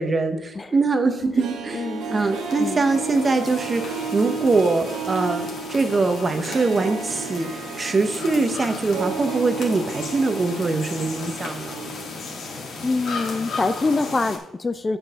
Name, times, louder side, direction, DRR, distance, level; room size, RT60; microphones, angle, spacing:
voice 1, 0.0-12.0, right 3 dB, 30° right, 7 dB, 1.0 m, -23 dB
Harp, 1.2-12.2 12.5-12.6, right 4 dB, 80° right, 1.2 m, -33 dB
voice 2, 1.7-2.1 2.6-2.8 12.8-15.0, left 3 dB, 25° left, 11 dB, 0.4 m, -25 dB
sound 1, 1.8-14.4, left 4 dB, 70° left, 2.2 m, -35 dB
8.1 x 5.4 x 5.7 m, 0.90 s
cardioid pair, 90°, 0 cm